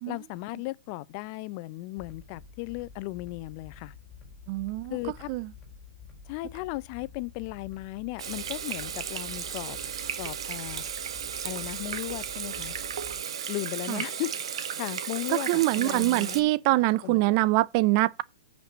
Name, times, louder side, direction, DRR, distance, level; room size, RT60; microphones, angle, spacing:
voice 1, 0.1-3.9 4.9-5.3 6.3-9.8 10.2-10.8 11.4-12.7 13.5-14.3 14.8-16.5 17.0-17.3, left 20 dB, 40° left, 0.6 m, -36 dB
sound 1, 2.0-13.2, left 6 dB, 20° left, 3.9 m, -49 dB
voice 2, 4.5-4.9 5.3-5.5 13.9-14.0 15.5-18.2, right 19 dB, 40° right, 0.5 m, -24 dB
Water tap faucet / Sink (filling or washing), 8.2-16.4, right 8 dB, 65° right, 1.7 m, -35 dB
9.0 x 5.3 x 7.9 m
hypercardioid pair, 120°, 3 cm